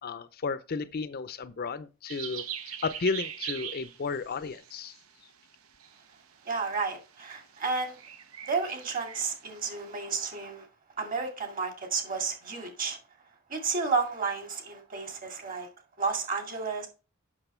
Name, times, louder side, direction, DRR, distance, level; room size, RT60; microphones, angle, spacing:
voice 1, 0.0-5.0, left 4 dB, 45° left, 0.5 m, -33 dB
sound 1, 2.1-5.3 5.6-6.2 6.5-6.8 7.1-10.0, right 9 dB, 85° right, 0.9 m, -42 dB
voice 2, 6.4-8.0 8.4-10.7 11.0-13.0 13.5-15.7 16.0-16.9, right 4 dB, 40° right, 2.2 m, -32 dB
8.0 x 6.2 x 4.3 m
head